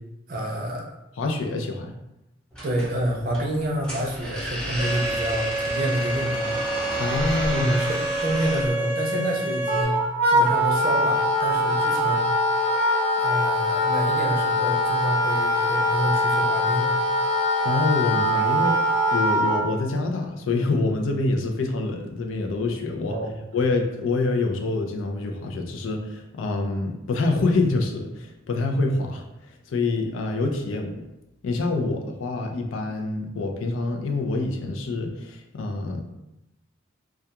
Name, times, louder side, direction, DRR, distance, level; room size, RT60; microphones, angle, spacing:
voice 1, 0.3-0.9 2.6-6.6 7.5-10.0 10.3-12.3 13.1-16.9 23.1-23.3, right 1 dB, 50° right, 0 dB, 0.5 m, -28 dB
voice 2, 1.2-1.9 7.0-7.8 17.6-18.8 19.1-23.2 23.5-31.0 31.4-36.0, left 3 dB, 90° left, 3 dB, 0.4 m, -26 dB
sound 1, 2.5-8.7, equal, 5° left, 0.6 m, -33 dB
Bowed string instrument, 4.8-9.8, right 1 dB, 65° left, 1.0 m, -28 dB
Wind instrument woodwind instrument, 9.7-19.6, equal, 40° left, 0.9 m, -22 dB
2.3 x 2.3 x 2.8 m, 0.90 s
head